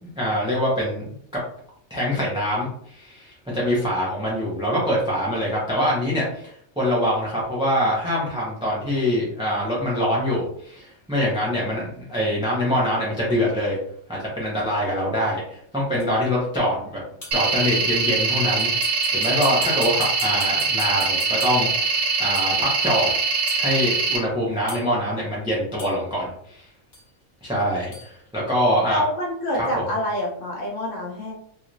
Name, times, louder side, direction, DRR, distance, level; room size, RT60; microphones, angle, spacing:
voice 1, 0.2-1.1 1.9-13.8 14.1-17.0 17.3-21.9 22.2-23.1 23.5-26.7 27.4-29.0 29.5-29.7, equal, 5° right, -6 dB, 0.6 m, -24 dB
sound 1, 16.0-16.1 17.2-17.5 18.6-21.8 22.3-22.6 23.5-23.7 24.7-25.1 25.8-26.0 26.9-27.1 27.9-28.1, left 2 dB, 35° left, 1.0 m, -39 dB
sound 2, 17.3-24.2, right 4 dB, 65° right, 1.1 m, -23 dB
voice 2, 28.8-31.3, left 1 dB, 65° left, -2 dB, 1.2 m, -27 dB
3.0 x 3.0 x 2.6 m, 0.65 s
omnidirectional pair, 1.4 m